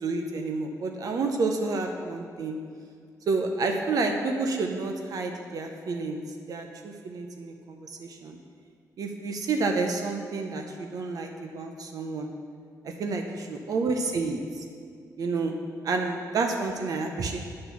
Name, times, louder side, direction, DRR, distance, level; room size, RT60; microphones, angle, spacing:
voice 1, 0.0-2.6 3.3-6.2 6.5-8.4 9.0-12.3 12.8-14.6 15.2-15.5 15.8-17.4, right 3 dB, 65° right, 4 dB, 0.6 m, -29 dB
8.4 x 4.4 x 5.7 m, 2.2 s
wide cardioid pair, 120°, 7 cm